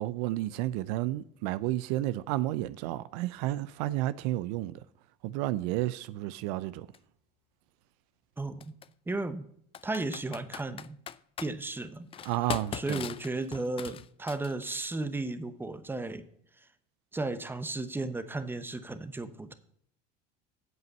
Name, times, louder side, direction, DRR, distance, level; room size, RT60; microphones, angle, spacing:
voice 1, 0.0-4.7 5.2-6.9 12.2-13.1, right 15 dB, 75° right, 0.5 m, -31 dB
Computer keyboard, 6.9-7.0 8.6-8.9 9.7-11.5 12.1-14.8, left 9 dB, 25° left, 0.4 m, -40 dB
voice 2, 9.1-9.4 9.8-11.0 11.4-12.3 12.7-16.3 17.1-19.5, right 2 dB, 10° right, 0.9 m, -34 dB
8.1 x 7.9 x 5.4 m
supercardioid pair, 110°, 21 cm